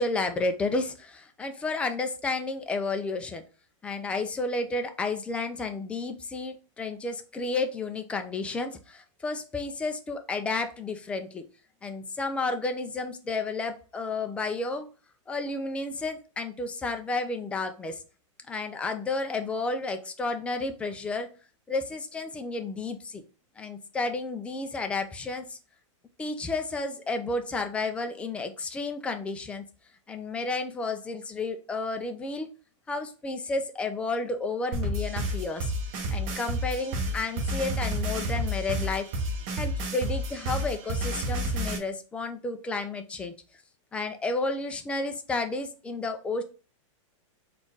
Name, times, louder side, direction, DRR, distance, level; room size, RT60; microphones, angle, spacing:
voice 1, 0.0-3.4 3.8-11.4 11.8-14.9 15.3-18.0 18.5-21.3 21.7-23.2 23.6-25.6 26.2-29.7 30.1-32.5 32.9-35.7 36.1-39.1 39.6-43.3 43.9-46.4, left 3 dB, 5° left, 6 dB, 0.3 m, -31 dB
sound 1, 34.7-41.8, equal, 35° right, 1.0 m, -30 dB
4.2 x 2.4 x 4.6 m, 0.36 s
supercardioid pair, 155°, 17 cm